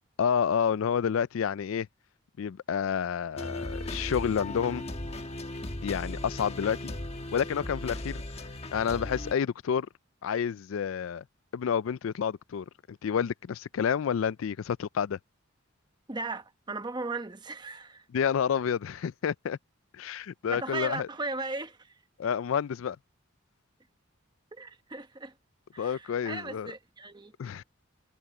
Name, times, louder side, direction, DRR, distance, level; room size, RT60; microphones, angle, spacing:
voice 1, 0.2-1.9 2.4-4.8 5.8-6.9 7.3-8.2 8.7-9.9 10.2-11.2 11.5-15.2 18.1-19.6 19.9-21.1 22.2-23.0 25.8-26.7 27.4-27.6, left 7 dB, 75° left, 0.4 m, -29 dB
sound 1, 3.4-9.3, left 1 dB, 30° left, 1.3 m, -37 dB
voice 2, 16.1-18.0 20.5-21.9 24.5-25.3 25.7-27.3, right 3 dB, 20° right, 1.0 m, -37 dB
head